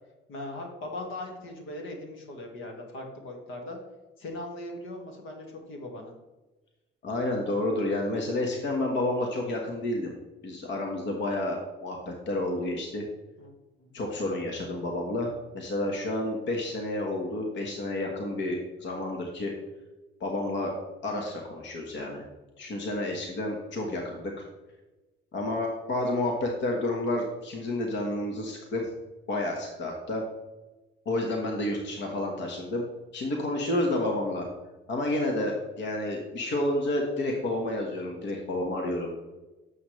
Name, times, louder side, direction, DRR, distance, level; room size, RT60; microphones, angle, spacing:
voice 1, 0.3-3.8 4.2-6.1 13.4-13.5 13.8-13.9, left 1 dB, 85° left, 2 dB, 1.8 m, -39 dB
voice 2, 7.0-10.1 10.4-13.0 13.9-19.5 20.2-20.8 21.0-22.2 22.6-24.3 25.3-28.9 29.3-30.2 31.0-32.8 33.1-34.5 34.9-39.1, left 1 dB, 65° left, 1 dB, 1.5 m, -30 dB
10.0 x 7.2 x 3.2 m, 1.1 s
cardioid pair, 90°, 20 cm